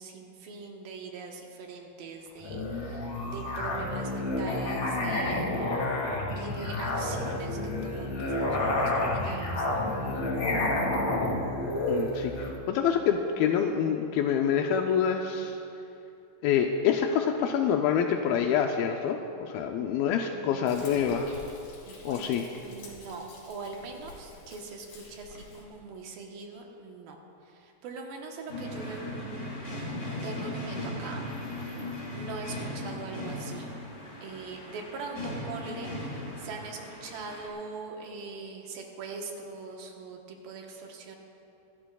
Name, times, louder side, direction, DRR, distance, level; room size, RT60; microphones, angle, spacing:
voice 1, 0.0-5.6 6.4-9.9 20.3-21.1 21.8-22.3 22.6-29.6 30.2-31.2 32.1-33.7 34.2-41.2, right 4 dB, 75° right, 1 dB, 3.0 m, -42 dB
Musical instrument, 2.4-12.6, left 1 dB, 45° left, 2.9 m, -30 dB
voice 2, 11.9-15.6 16.4-21.3 22.0-22.4, left 8 dB, 85° left, 3 dB, 2.4 m, -26 dB
Frying (food), 20.7-25.7, left 3 dB, 60° left, 3.8 m, -49 dB
sound 1, 28.5-37.5, left 1 dB, 20° left, 2.4 m, -37 dB
26.0 x 12.5 x 2.4 m, 2.7 s
omnidirectional pair, 4.3 m